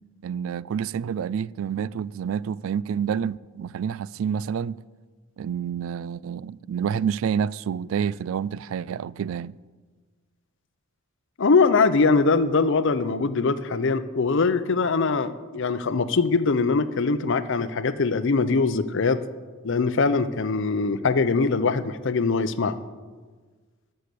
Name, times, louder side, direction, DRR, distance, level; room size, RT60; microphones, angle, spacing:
voice 1, 0.2-4.8 5.4-9.6, right 7 dB, 70° right, 0.3 m, -28 dB
voice 2, 11.4-19.2 19.6-22.8, left 4 dB, 65° left, 0.6 m, -22 dB
12.5 x 6.7 x 8.3 m
head